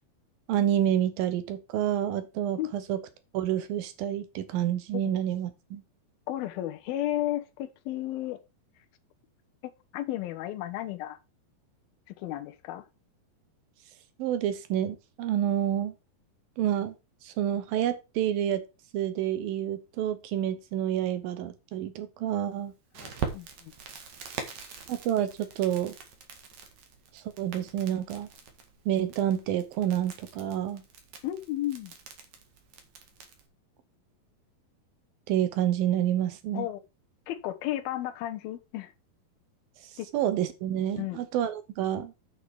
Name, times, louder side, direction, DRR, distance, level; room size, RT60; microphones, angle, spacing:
voice 1, 0.5-3.0 3.3-5.8 14.2-15.9 16.6-16.9 17.2-18.6 18.9-22.7 24.9-25.3 25.6-26.0 27.1-28.3 28.9-30.8 35.3-36.7 39.9-42.1, right 11 dB, 75° right, 2.7 m, -28 dB
voice 2, 6.3-8.4 9.9-11.2 12.2-12.9 23.0-23.7 31.2-31.9 36.5-36.8 37.3-38.9 40.0-40.1 41.0-41.2, left 14 dB, 90° left, 2.8 m, -33 dB
Crackle, 22.9-33.5, right 6 dB, 55° right, 2.8 m, -43 dB
8.9 x 7.6 x 4.8 m
omnidirectional pair, 4.2 m